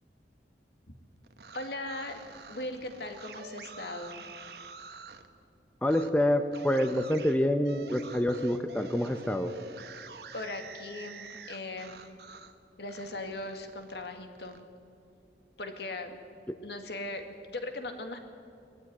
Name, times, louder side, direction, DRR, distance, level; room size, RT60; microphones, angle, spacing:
sound 1, 1.2-5.3 5.8-6.1 6.5-12.6 12.9-14.6, right 4 dB, 65° right, 1.2 m, -47 dB
voice 1, 1.5-2.2 2.5-4.3 10.3-12.0 12.8-14.7 15.6-16.2 16.6-18.2, left 2 dB, 65° left, 6 dB, 2.1 m, -39 dB
voice 2, 5.8-9.5 16.5-16.6, left 1 dB, 10° left, 8 dB, 0.7 m, -27 dB
20.5 x 15.0 x 9.7 m, 2.6 s
head